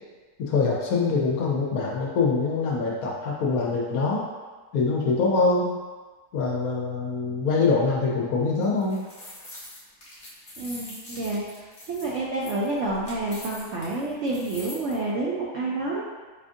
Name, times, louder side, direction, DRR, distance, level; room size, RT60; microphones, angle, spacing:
voice 1, 0.4-4.3 4.7-5.8 6.3-9.0, left 4 dB, 70° left, -3 dB, 1.0 m, -24 dB
sound 1, 8.6-14.9, left 1 dB, 35° left, 1.1 m, -43 dB
voice 2, 10.6-16.0, right 2 dB, 70° right, -5 dB, 0.7 m, -29 dB
4.9 x 2.4 x 2.6 m, 1.3 s
omnidirectional pair, 1.7 m